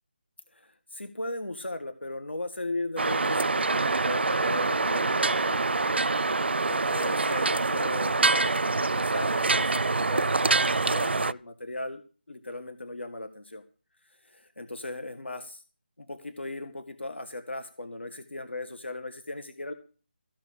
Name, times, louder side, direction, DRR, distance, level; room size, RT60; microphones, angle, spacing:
voice 1, 0.5-6.1 6.7-12.0 12.3-13.6 14.2-15.6 16.0-19.7, left 2 dB, 85° left, 9 dB, 1.9 m, -37 dB
sound 1, 3.0-11.3, right 3 dB, 70° right, 0.5 m, -25 dB
15.5 x 6.1 x 8.5 m, 0.37 s
figure-of-eight pair, 160°, 6 cm